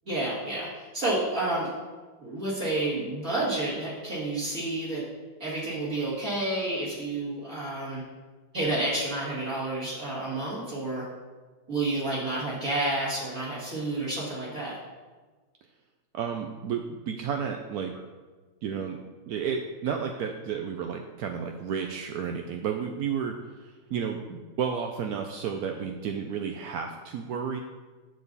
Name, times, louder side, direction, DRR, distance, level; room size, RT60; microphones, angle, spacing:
voice 1, 0.1-1.7 2.2-5.0 5.4-8.0 8.5-11.1 11.7-14.8, right 2 dB, 45° right, -8 dB, 2.6 m, -30 dB
voice 2, 16.1-17.9 18.6-19.0 19.3-27.6, right 7 dB, 70° right, 4 dB, 0.9 m, -32 dB
9.4 x 7.0 x 4.1 m, 1.3 s
omnidirectional pair, 2.1 m